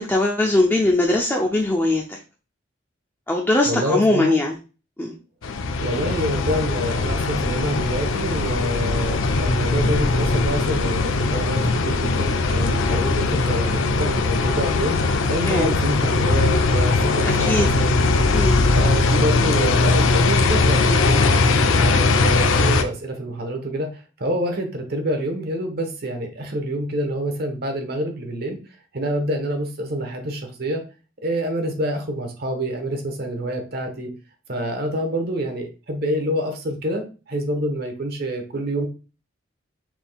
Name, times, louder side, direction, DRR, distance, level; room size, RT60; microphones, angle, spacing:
voice 1, 0.0-2.2 3.3-4.6 5.0-5.1 15.4-15.8 17.3-17.7 18.3-18.6, left 2 dB, 10° left, 0 dB, 0.5 m, -20 dB
voice 2, 3.6-4.4 5.8-15.0 15.3-18.0 18.7-23.9 24.2-28.6 28.9-30.8 31.2-34.1 34.5-38.9, right 1 dB, 55° right, 5 dB, 1.1 m, -27 dB
sound 1, 5.4-22.8, left 3 dB, 80° left, 0.5 m, -20 dB
5.9 x 3.5 x 2.3 m, 0.33 s
head